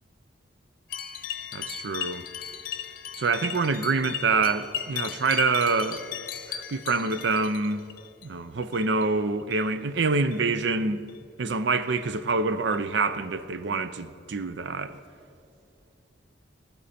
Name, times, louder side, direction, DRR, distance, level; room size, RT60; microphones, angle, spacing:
sound 1, 0.9-8.3 8.6-9.0 9.4-9.7 10.2-10.4 11.1-11.2 11.9-12.0 12.7-12.8, left 9 dB, 50° left, 0.8 m, -36 dB
voice 1, 1.5-2.2 3.2-6.0 6.5-7.8 8.2-11.0 11.4-15.0, right 4 dB, 65° right, 0.5 m, -26 dB
14.5 x 12.0 x 4.3 m
head